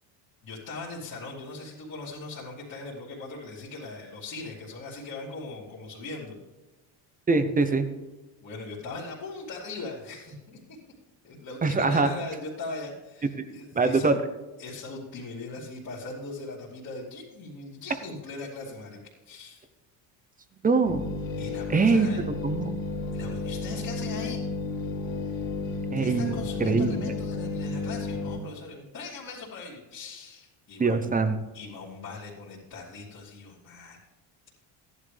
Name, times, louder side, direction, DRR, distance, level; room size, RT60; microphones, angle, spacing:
voice 1, 0.4-6.3 8.4-10.6 11.2-14.1 14.6-19.0 19.2-19.7 21.4-22.2 23.1-24.4 25.9-31.2 31.5-34.0, left 3 dB, 40° left, -8 dB, 3.0 m, -40 dB
voice 2, 7.3-7.9 11.6-12.1 13.7-14.2 20.6-21.0 21.7-22.1 22.4-22.7 25.9-27.0 30.8-31.4, right 4 dB, 15° right, 10 dB, 0.7 m, -23 dB
sound 1, 20.8-28.4, left 3 dB, 60° left, 3.2 m, -32 dB
15.0 x 11.0 x 3.4 m, 1.1 s
cardioid pair, 155°, 49 cm